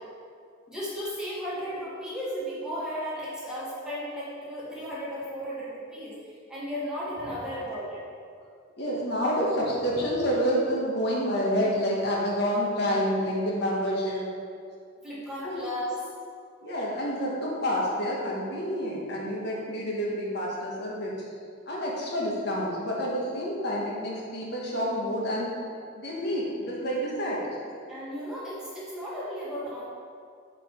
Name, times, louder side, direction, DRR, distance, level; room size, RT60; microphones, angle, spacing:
voice 1, 0.7-6.2 6.5-8.0 15.0-16.0 27.9-29.8, equal, 5° right, -9 dB, 1.7 m, -35 dB
voice 2, 8.8-14.2 15.4-15.6 16.6-21.1 21.7-25.5 26.0-27.5, equal, 55° left, -4 dB, 1.4 m, -28 dB
5.5 x 5.1 x 6.4 m, 2.3 s
head